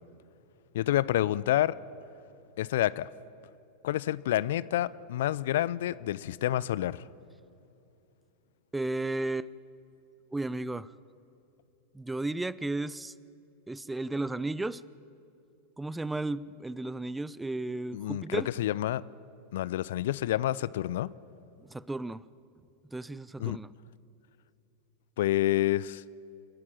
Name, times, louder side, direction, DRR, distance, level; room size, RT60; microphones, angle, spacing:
voice 1, 0.7-1.8 2.6-3.1 3.8-7.0 17.9-19.0 19.5-21.1 23.4-23.6 25.2-26.0, left 13 dB, 60° left, 0.4 m, -28 dB
voice 2, 8.7-9.5 10.3-10.9 11.9-13.1 13.7-14.8 15.8-18.5 21.7-22.2 22.9-23.7, right 2 dB, 10° right, 0.5 m, -34 dB
28.5 x 10.5 x 8.8 m
figure-of-eight pair, 90°, 0 cm